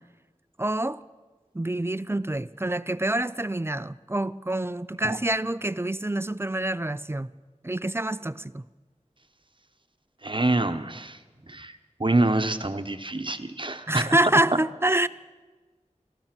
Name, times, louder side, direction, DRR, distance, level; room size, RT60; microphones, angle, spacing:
voice 1, 0.6-1.0 1.5-7.3 7.6-8.6 13.9-15.1, right 1 dB, 20° right, 0.4 m, -26 dB
voice 2, 10.2-11.2 11.5-11.7 12.0-14.2, right 2 dB, 40° right, 0.9 m, -26 dB
15.5 x 13.5 x 6.0 m
wide cardioid pair, 45°, 12 cm